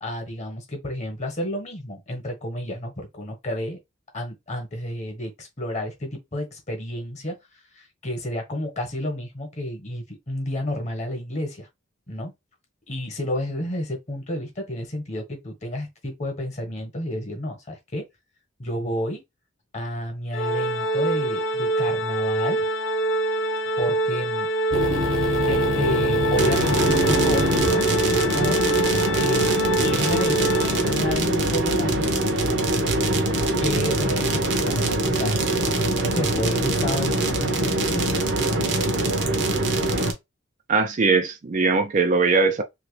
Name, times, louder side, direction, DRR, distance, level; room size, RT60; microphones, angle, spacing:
voice 1, 0.0-3.8 4.1-7.4 7.7-11.7 12.1-12.3 12.9-18.0 18.6-19.2 19.7-22.7 23.8-24.5 25.5-27.8 28.1-28.6 29.2-32.5 33.6-35.4 35.9-38.1 38.4-38.6, left 1 dB, 35° left, 1.2 m, -30 dB
Organ, 20.3-31.2, right 1 dB, 60° left, 0.6 m, -25 dB
sound 1, 24.7-30.6, left 1 dB, 75° right, 1.3 m, -27 dB
sound 2, 26.4-40.1, right 2 dB, 55° right, 0.8 m, -23 dB
voice 2, 40.7-42.6, right 4 dB, 35° right, 0.4 m, -20 dB
3.0 x 2.8 x 3.2 m
head